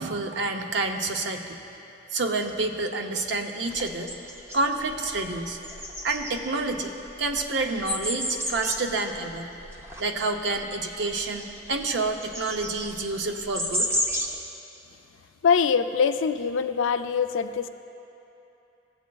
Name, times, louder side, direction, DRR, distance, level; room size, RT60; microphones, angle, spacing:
voice 1, 0.0-1.6 2.1-4.1 4.5-5.6 6.0-9.5 10.0-13.9, right 3 dB, 65° right, 4 dB, 0.6 m, -28 dB
sound 1, 3.7-14.4, equal, 15° right, 0.6 m, -33 dB
voice 2, 15.4-17.7, left 6 dB, 85° left, 10 dB, 0.4 m, -23 dB
15.0 x 8.3 x 2.3 m, 3.0 s
head